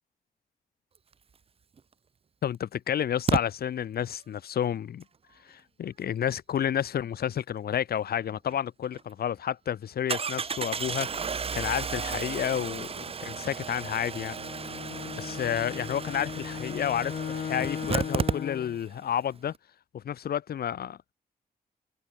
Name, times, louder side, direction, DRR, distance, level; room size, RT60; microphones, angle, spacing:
Engine starting, 1.8-1.9 3.3-3.4 8.5-8.6 8.9-9.0 10.1-18.9 19.2-19.3 19.5-19.6, right 6 dB, 35° right, 1.5 m, -33 dB
voice 1, 2.4-5.0 5.5-14.4 15.2-19.5 19.9-21.0, left 9 dB, 80° left, 2.6 m, -30 dB
Bowed string instrument, 14.0-18.8, left 8 dB, 60° left, 2.5 m, -37 dB
wide cardioid pair, 160°, 16 cm